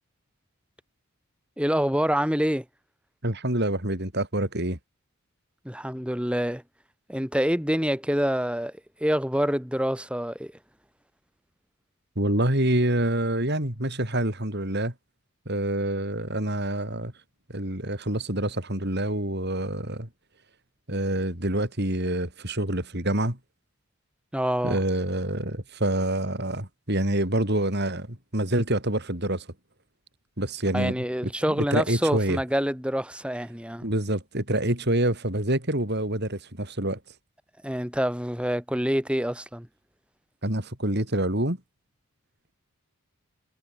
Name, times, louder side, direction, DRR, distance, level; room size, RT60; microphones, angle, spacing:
voice 1, 1.6-2.6 5.6-6.6 7.1-8.7 9.0-10.5 24.3-24.8 30.7-33.9 37.6-39.7, equal, 5° right, 4.3 m, -26 dB
voice 2, 3.2-4.8 12.1-14.9 15.4-17.1 17.5-20.1 20.9-23.4 24.6-29.5 30.4-32.4 33.8-37.0 40.4-41.6, right 1 dB, 45° right, 5.1 m, -27 dB
head